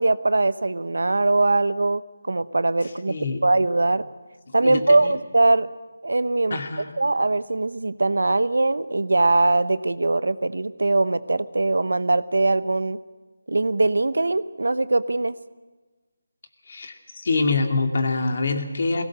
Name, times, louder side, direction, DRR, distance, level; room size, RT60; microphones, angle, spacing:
voice 1, 0.0-3.2 3.4-4.0 4.5-5.7 6.0-6.6 7.0-13.0 13.5-15.3, right 2 dB, 80° right, 16 dB, 0.9 m, -21 dB
voice 2, 3.1-3.4 4.6-5.1 6.5-6.9 16.7-19.0, left 3 dB, 50° left, 5 dB, 2.4 m, -25 dB
20.0 x 17.5 x 7.7 m, 1.2 s
figure-of-eight pair, 165°, 0 cm